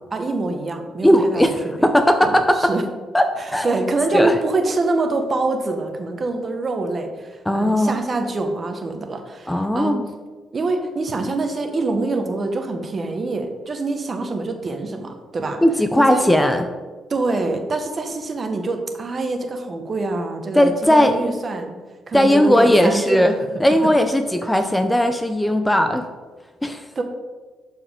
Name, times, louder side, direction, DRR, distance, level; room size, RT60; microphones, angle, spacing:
voice 1, 0.1-1.9 2.2-2.8 3.4-10.0 10.5-15.6 16.0-16.3 17.1-21.7 22.1-23.3 26.9-27.0, right 3 dB, 40° right, 5 dB, 1.1 m, -25 dB
voice 2, 1.0-2.7 3.1-3.3 3.5-3.8 4.1-4.4 7.5-7.9 9.5-10.1 15.6-16.7 20.5-21.2 22.1-23.3 23.6-26.0 26.6-26.8, equal, 5° left, 7 dB, 0.5 m, -17 dB
12.0 x 4.6 x 3.7 m, 1.4 s
cardioid pair, 90°, 0 cm